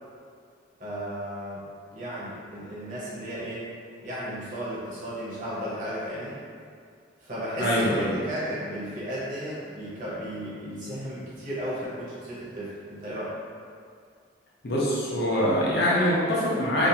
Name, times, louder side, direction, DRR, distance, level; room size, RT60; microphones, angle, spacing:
voice 1, 0.8-1.6 1.9-3.7 4.0-6.4 7.2-13.3, equal, 45° right, -8 dB, 0.7 m, -34 dB
voice 2, 7.6-8.2 14.6-16.9, equal, 60° left, -6 dB, 0.6 m, -24 dB
2.4 x 2.3 x 2.7 m, 2.2 s
head